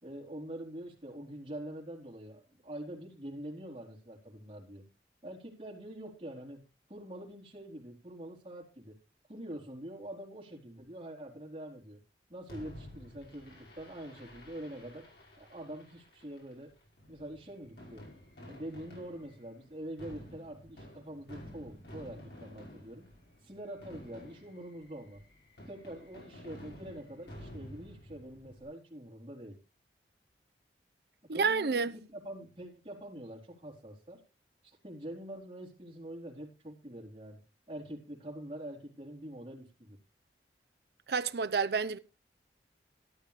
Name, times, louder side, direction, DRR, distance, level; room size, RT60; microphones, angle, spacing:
voice 1, 0.0-4.9 5.2-6.6 6.9-9.0 9.3-12.0 12.3-15.1 15.4-16.7 17.1-18.0 18.4-23.1 23.4-25.2 25.6-29.6 31.3-34.2 34.6-37.4 37.7-40.0, right 1 dB, 30° right, 4.1 m, -45 dB
Fireworks, 12.5-28.6, equal, 65° left, 5.5 m, -51 dB
voice 2, 31.3-31.9 41.1-42.0, right 5 dB, 65° right, 0.6 m, -29 dB
13.0 x 12.0 x 3.4 m
head